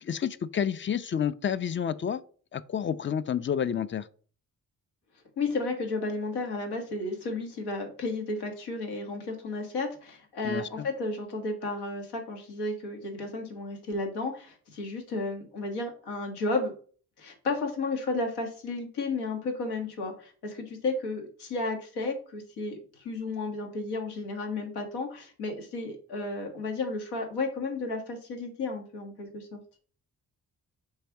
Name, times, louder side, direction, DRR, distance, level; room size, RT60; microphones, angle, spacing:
voice 1, 0.0-2.2 2.5-4.1 10.4-10.9, left 8 dB, 30° left, 0.4 m, -30 dB
voice 2, 5.4-16.7 17.2-29.6, left 3 dB, 80° left, 1.3 m, -33 dB
3.3 x 3.2 x 4.6 m
hypercardioid pair, 40°, 39 cm